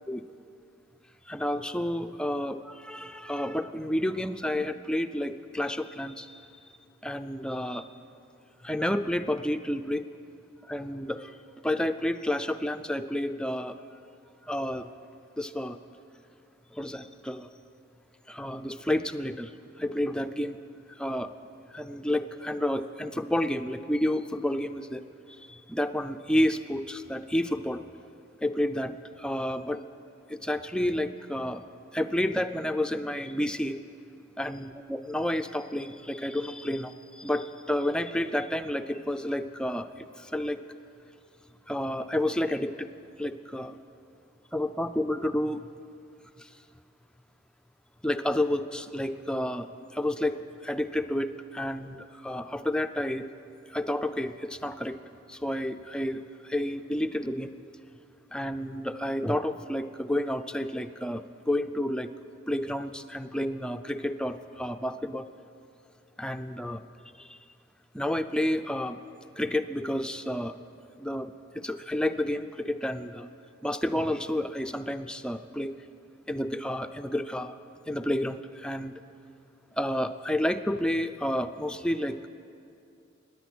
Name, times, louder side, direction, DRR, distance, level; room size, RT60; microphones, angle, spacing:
voice 1, 1.3-6.4 7.0-7.9 8.6-10.0 10.6-11.4 11.6-13.8 14.5-14.9 15.4-15.8 16.7-17.5 18.3-19.5 19.8-20.6 21.0-21.3 21.7-25.0 25.4-27.8 28.4-29.8 30.3-31.7 31.9-33.8 34.4-40.6 41.7-42.9 43.2-43.8 44.5-45.6 46.4-46.5 48.0-49.7 49.9-53.3 53.7-55.0 55.3-57.5 58.3-62.1 62.5-65.3 66.2-66.8 67.2-67.4 67.9-69.0 69.4-70.5 71.0-73.3 73.6-75.8 76.3-77.6 77.9-78.9 79.8-82.3, left 1 dB, 5° left, 8 dB, 0.4 m, -30 dB
17.5 x 10.5 x 6.1 m, 2.5 s
head